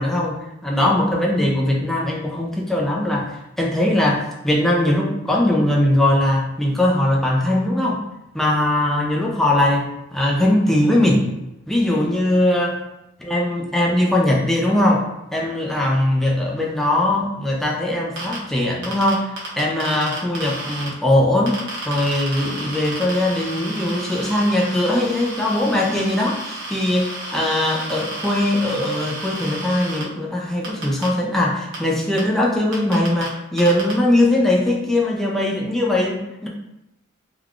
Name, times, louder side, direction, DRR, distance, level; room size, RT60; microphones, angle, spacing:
voice 1, 0.0-8.0 8.3-11.3 11.7-12.8 13.3-36.5, left 1 dB, ahead, -3 dB, 0.4 m, -20 dB
sound 1, 18.2-18.4 18.8-20.9 21.5-30.0 30.6-31.1 31.7-31.8 32.2-32.3 32.7-33.3 33.6-33.9, right 2 dB, 65° right, 0.9 m, -32 dB
3.4 x 2.3 x 2.4 m, 0.91 s
head